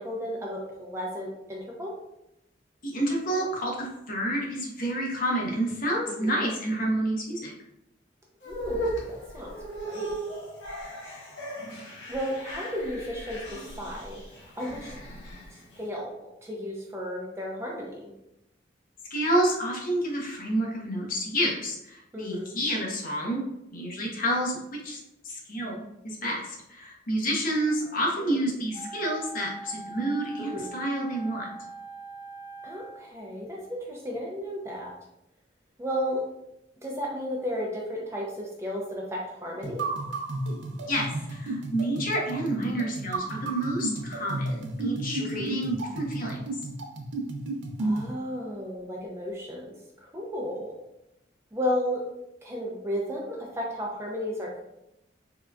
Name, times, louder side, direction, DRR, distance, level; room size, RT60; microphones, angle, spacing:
voice 1, 0.0-1.9 6.1-6.3 8.5-9.5 9.8-10.2 12.1-14.9 15.8-16.1 16.4-18.1 22.1-22.5 28.2-28.4 30.4-30.7 32.6-34.9 35.8-36.2 36.8-39.8 45.2-45.5 47.8-50.7 51.5-52.0 52.4-54.6, equal, 15° right, -2 dB, 0.4 m, -33 dB
voice 2, 2.8-7.5 19.1-23.4 23.7-25.0 25.2-31.5 40.9-46.4, right 1 dB, 50° left, -2 dB, 0.6 m, -29 dB
sound 1, 8.4-15.8, right 1 dB, 85° left, 0.8 m, -37 dB
Wind instrument woodwind instrument, 28.7-33.1, right 2 dB, 25° left, 1.5 m, -42 dB
sound 2, 39.6-48.1, right 2 dB, 80° right, 0.4 m, -33 dB
3.6 x 2.2 x 2.2 m, 0.86 s
head